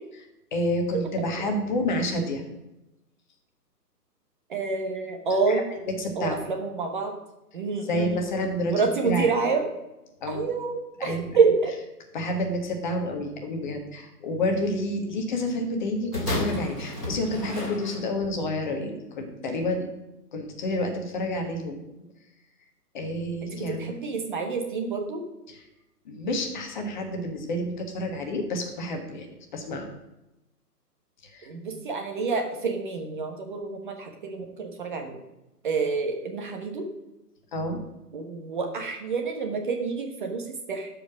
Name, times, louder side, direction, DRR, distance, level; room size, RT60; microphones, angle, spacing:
voice 1, 0.5-2.4 5.5-6.5 7.8-9.3 10.2-10.4 11.0-11.4 12.1-19.9 20.3-21.8 22.9-23.9 25.5-25.6 26.0-29.9 31.2-31.5 37.5-37.8, left 1 dB, 30° left, 4 dB, 1.4 m, -29 dB
voice 2, 4.5-5.6 6.2-7.1 7.5-8.1 8.7-9.7 10.3-11.7 23.8-25.2 31.4-35.2 35.6-36.8 38.1-40.9, right 4 dB, 30° right, 3 dB, 1.1 m, -27 dB
sound 1, 16.1-18.4 19.2-19.3, left 1 dB, ahead, 0.6 m, -32 dB
12.5 x 5.0 x 6.2 m, 0.95 s
hypercardioid pair, 160°, 48 cm